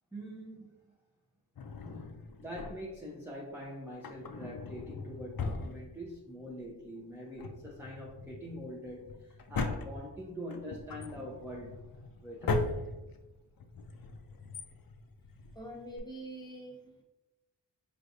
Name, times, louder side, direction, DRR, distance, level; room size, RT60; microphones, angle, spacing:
voice 1, 0.1-0.9 2.2-11.8 12.2-12.7, equal, 5° right, -4 dB, 0.7 m, -44 dB
Drawer open or close, 1.6-3.1 3.9-6.4 6.7-6.8 7.2-16.0, left 3 dB, 55° left, 0.5 m, -39 dB
voice 2, 15.5-17.0, right 1 dB, 10° left, -2 dB, 1.2 m, -45 dB
4.7 x 3.2 x 2.6 m, 1.0 s
cardioid pair, 45°, 43 cm